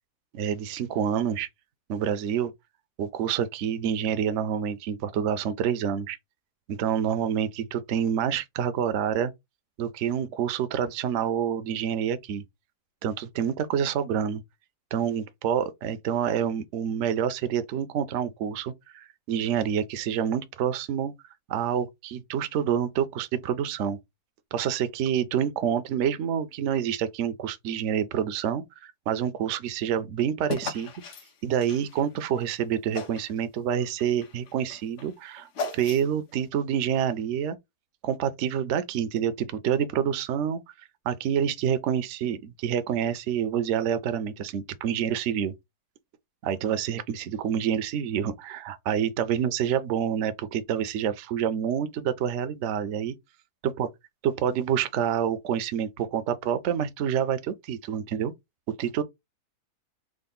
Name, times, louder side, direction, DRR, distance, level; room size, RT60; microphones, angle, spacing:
voice 1, 0.3-1.5 1.9-2.5 3.0-6.2 6.7-9.3 9.8-12.4 13.0-14.4 14.9-21.1 21.5-24.0 24.5-30.9 31.4-37.6 38.0-40.6 41.1-45.5 46.4-53.2 54.2-58.3 58.7-59.0, right 8 dB, 60° right, 0.8 m, -27 dB
sound 1, 30.5-32.5 32.9-33.4 33.7-36.3, left 3 dB, 55° left, 1.0 m, -37 dB
3.8 x 2.3 x 3.7 m
omnidirectional pair, 1.7 m